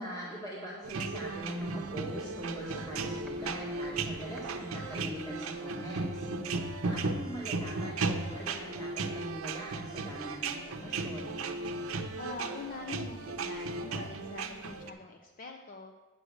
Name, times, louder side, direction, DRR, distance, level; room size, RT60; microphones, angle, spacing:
voice 1, 0.0-6.3 6.8-11.4, equal, 20° left, -6 dB, 1.8 m, -41 dB
sound 1, 0.8-14.9, right 3 dB, 80° right, 0.7 m, -36 dB
Walk footsteps, 1.6-5.7 6.0-6.1, equal, ahead, 1.1 m, -53 dB
voice 2, 12.2-15.9, left 4 dB, 40° left, 4 dB, 0.5 m, -44 dB
9.1 x 6.3 x 6.4 m, 1.3 s
head